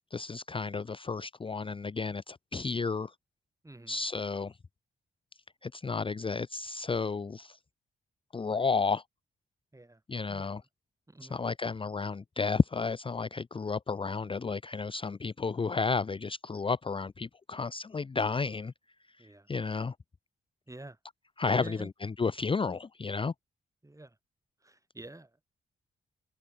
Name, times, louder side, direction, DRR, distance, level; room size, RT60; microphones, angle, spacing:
voice 1, 0.1-3.1 3.9-4.6 5.6-7.6 8.3-9.0 10.1-10.6 11.2-18.7 19.2-19.9 21.4-23.3, left 4 dB, 30° left, 0.6 m, -32 dB
voice 2, 11.1-11.4 19.2-19.5 20.7-21.0 21.5-21.9 23.8-24.1 24.6-25.4, right 2 dB, 15° right, 4.8 m, -48 dB
supercardioid pair, 55°, 19 cm